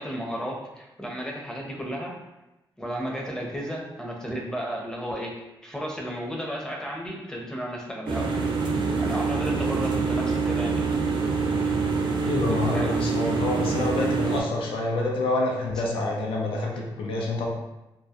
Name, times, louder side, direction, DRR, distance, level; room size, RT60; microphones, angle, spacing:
voice 1, 0.0-2.1 2.8-5.4 5.6-8.3 9.0-10.9 12.6-13.3, equal, 5° left, -1 dB, 0.6 m, -33 dB
sound 1, 8.1-14.4, right 4 dB, 60° right, 0.4 m, -25 dB
voice 2, 12.2-17.5, left 2 dB, 85° left, -1 dB, 0.5 m, -27 dB
2.2 x 2.0 x 2.8 m, 0.97 s
cardioid pair, 65°, 9 cm